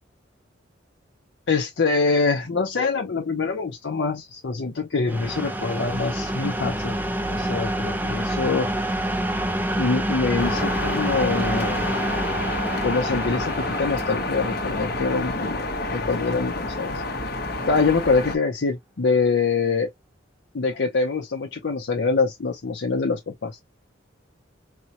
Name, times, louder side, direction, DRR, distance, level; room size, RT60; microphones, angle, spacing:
voice 1, 1.5-7.0 7.3-8.7 9.8-11.8 12.8-15.7 15.9-17.0 17.7-19.9 20.5-23.6, left 4 dB, 70° left, 0.7 m, -24 dB
sound 1, 5.1-16.7, right 1 dB, 10° right, 0.4 m, -28 dB
sound 2, 10.4-18.4, left 2 dB, 55° left, 1.0 m, -29 dB
4.4 x 2.1 x 2.8 m
head